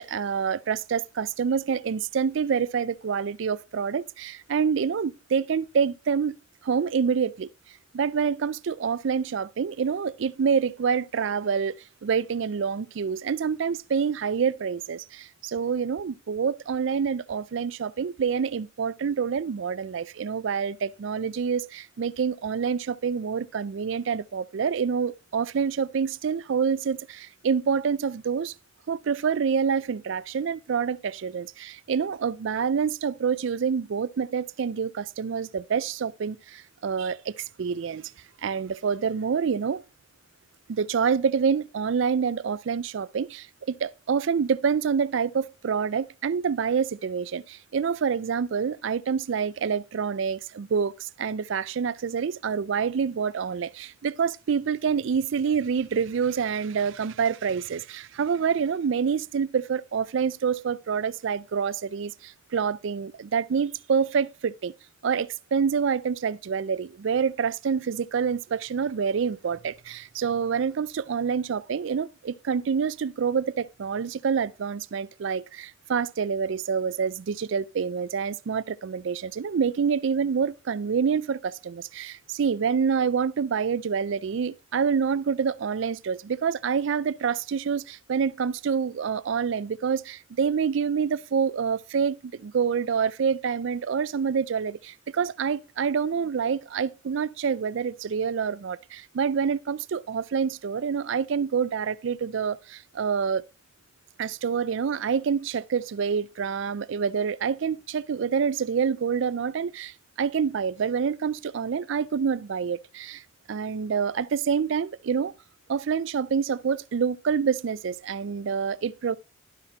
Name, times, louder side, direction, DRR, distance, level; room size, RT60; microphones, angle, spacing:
voice 1, 0.0-6.4 6.6-7.5 7.9-28.5 28.9-38.1 38.4-39.8 40.7-64.7 65.0-103.4 104.2-113.2 113.5-115.3 115.7-119.2, right 6 dB, 65° right, 0.4 m, -27 dB
11.5 x 4.3 x 4.9 m
head